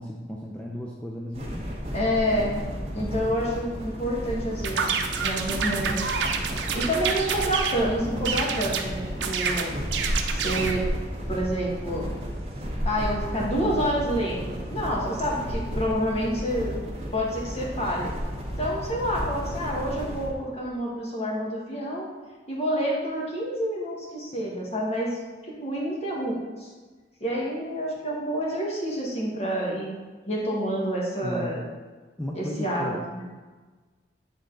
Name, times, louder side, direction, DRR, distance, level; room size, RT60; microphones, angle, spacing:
voice 1, 0.0-1.7 2.8-3.3 31.2-31.5 32.2-33.0, left 1 dB, 5° left, -3 dB, 0.5 m, -35 dB
sound 1, 1.3-20.3, equal, 35° right, 1.4 m, -33 dB
voice 2, 1.9-2.6 2.9-6.1 6.7-9.7 10.3-10.8 11.3-12.1 12.8-16.7 17.1-18.1 18.6-22.1 22.5-26.7 27.2-29.9 30.3-31.6 32.3-33.2, equal, 35° left, -3 dB, 1.5 m, -28 dB
sound 2, 4.6-7.8 8.2-8.9 9.2-10.8, right 6 dB, 85° right, 0.6 m, -28 dB
8.7 x 3.9 x 3.8 m, 1.3 s
head